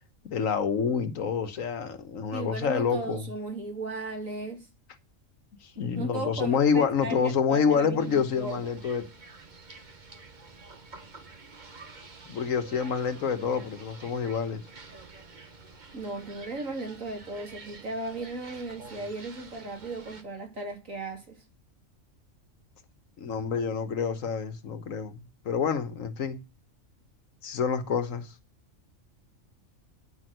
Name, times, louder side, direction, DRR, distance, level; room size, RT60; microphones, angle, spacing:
voice 1, 0.2-3.2 5.6-9.0 12.3-14.6 23.2-26.4 27.4-28.3, left 6 dB, 85° left, 1.6 m, -27 dB
voice 2, 2.3-4.7 5.9-8.7 15.9-21.4, right 2 dB, 85° right, 3.4 m, -36 dB
sound 1, 8.0-20.2, right 3 dB, 35° right, 1.3 m, -49 dB
10.5 x 6.1 x 7.8 m
omnidirectional pair, 1.3 m